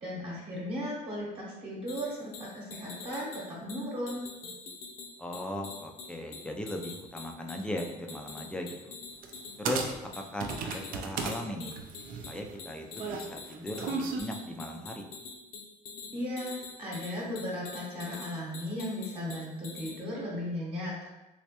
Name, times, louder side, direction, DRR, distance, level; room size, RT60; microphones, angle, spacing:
voice 1, 0.0-4.2 16.1-20.9, equal, 40° right, -5 dB, 1.0 m, -36 dB
sound 1, 1.9-20.0, left 4 dB, 70° left, 0.8 m, -46 dB
voice 2, 5.2-9.0 9.6-11.8 12.3-15.1, left 1 dB, 5° left, 2 dB, 0.4 m, -38 dB
sound 2, 9.2-9.4 9.7-11.4 11.7-14.2, right 5 dB, 65° right, 0.5 m, -35 dB
3.3 x 3.1 x 2.9 m, 1.0 s
cardioid pair, 125°, 16 cm